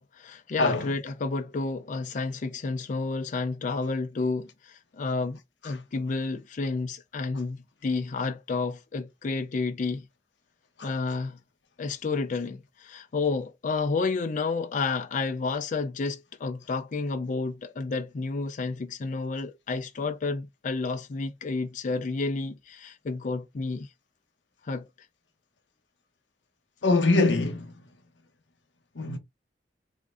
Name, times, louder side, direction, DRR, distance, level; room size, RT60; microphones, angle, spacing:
voice 1, 0.0-10.0 10.8-11.4 11.8-23.9 24.6-24.9, left 3 dB, 45° left, 0.4 m, -30 dB
voice 2, 0.6-1.0 5.6-5.8 10.8-10.9 26.8-27.8 28.9-29.2, left 3 dB, 85° left, 0.9 m, -24 dB
3.5 x 2.5 x 3.5 m
head